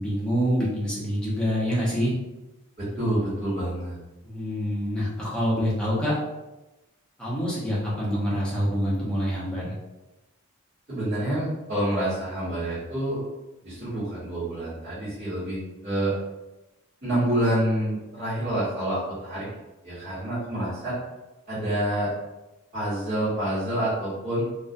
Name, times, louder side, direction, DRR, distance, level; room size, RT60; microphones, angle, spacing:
voice 1, 0.0-2.1 4.2-6.1 7.2-9.7, equal, 5° left, -8 dB, 0.6 m, -26 dB
voice 2, 2.8-3.9 10.9-13.2 13.6-16.2 17.0-19.5 19.8-20.9 21.5-22.1 22.7-24.5, right 1 dB, 30° right, -15 dB, 1.1 m, -27 dB
2.3 x 2.1 x 2.6 m, 1.0 s
head